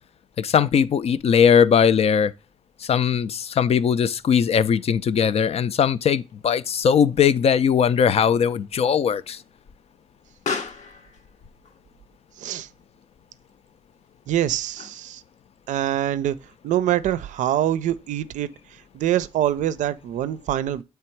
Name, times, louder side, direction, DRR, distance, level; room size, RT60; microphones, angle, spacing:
voice 1, 0.4-2.3 2.8-9.4, left 7 dB, 55° left, 0.4 m, -19 dB
Explosion, 6.3-15.3, left 5 dB, 75° left, 1.0 m, -40 dB
voice 2, 12.4-12.7 14.3-15.2 15.7-16.4 16.6-18.5 18.9-20.8, right 12 dB, 85° right, 0.4 m, -24 dB
7.6 x 3.4 x 4.5 m
cardioid pair, 60°, 12 cm